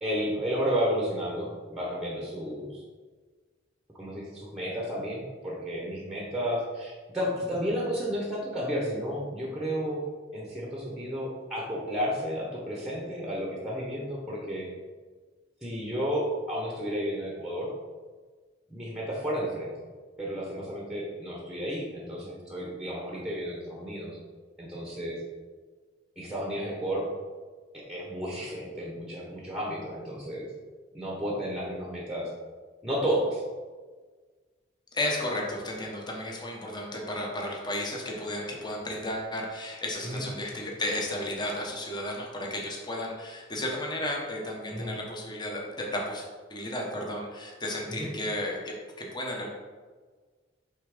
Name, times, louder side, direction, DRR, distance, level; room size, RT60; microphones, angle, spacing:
voice 1, 0.0-2.8 3.9-10.0 10.3-14.7 15.6-17.7 18.7-19.7 20.2-24.2 24.6-25.2 26.2-27.1 27.7-30.5 30.9-32.3 32.8-33.4 40.0-40.2 44.7-44.9 48.0-48.1, equal, 5° right, -3 dB, 1.0 m, -32 dB
voice 2, 34.9-49.5, left 1 dB, 25° left, -1 dB, 1.0 m, -33 dB
5.5 x 3.6 x 5.0 m, 1.4 s
head